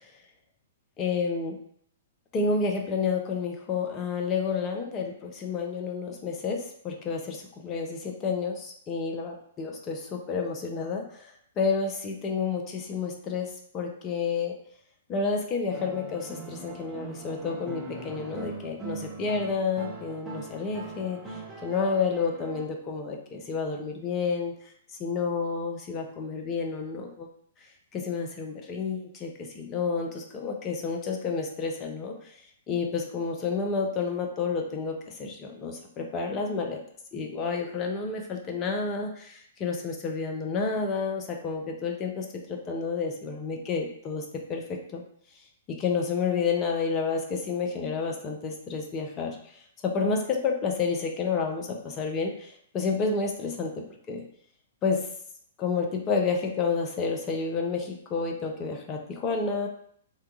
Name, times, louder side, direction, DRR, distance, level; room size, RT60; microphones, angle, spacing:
voice 1, 1.0-1.6 2.3-11.2 11.6-14.5 15.1-21.2 21.6-24.5 25.0-27.3 27.9-32.1 32.7-36.8 37.1-44.2 44.5-45.0 45.7-49.4 49.8-53.7 54.1-54.2 54.8-55.0 55.6-59.7, left 5 dB, 25° left, 2 dB, 0.6 m, -30 dB
sound 1, 15.7-22.6, right 3 dB, 10° right, 0.7 m, -41 dB
2.8 x 2.3 x 3.6 m, 0.64 s
figure-of-eight pair, 110°, 0 cm